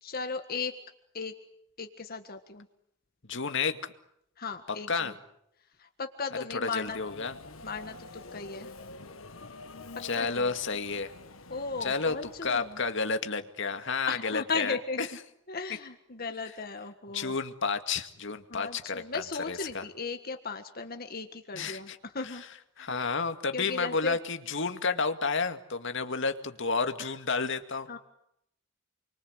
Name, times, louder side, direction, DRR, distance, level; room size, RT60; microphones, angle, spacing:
voice 1, 0.0-0.7 1.1-1.3 1.8-2.7 4.4-5.1 5.8-7.0 7.6-8.7 10.1-10.5 11.5-12.8 14.1-15.1 15.5-17.4 18.5-22.4 22.8-23.1 23.5-24.2 27.0-27.1 27.9-28.0, left 4 dB, 50° left, 6 dB, 1.7 m, -36 dB
voice 2, 3.3-3.8 4.9-5.1 6.5-7.3 10.0-11.1 11.8-12.2 12.4-15.1 17.1-19.8 21.5-22.0 22.2-22.4 22.8-28.0, left 4 dB, 65° left, 8 dB, 2.2 m, -31 dB
Subway metro underground, 6.8-13.1, left 3 dB, 80° left, 1.5 m, -47 dB
30.0 x 23.5 x 8.1 m, 0.76 s
head